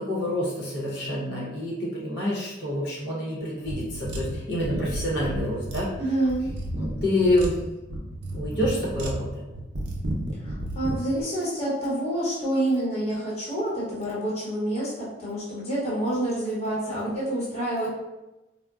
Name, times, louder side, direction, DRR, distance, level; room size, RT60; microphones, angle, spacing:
voice 1, 0.0-5.9 6.7-7.6 8.3-9.4, left 1 dB, 65° left, -5 dB, 0.9 m, -27 dB
sound 1, 3.7-11.0, right 1 dB, 65° right, 0.6 m, -32 dB
voice 2, 6.0-6.5 10.4-17.9, right 1 dB, 35° left, -7 dB, 0.9 m, -28 dB
3.8 x 2.1 x 2.3 m, 1.0 s
head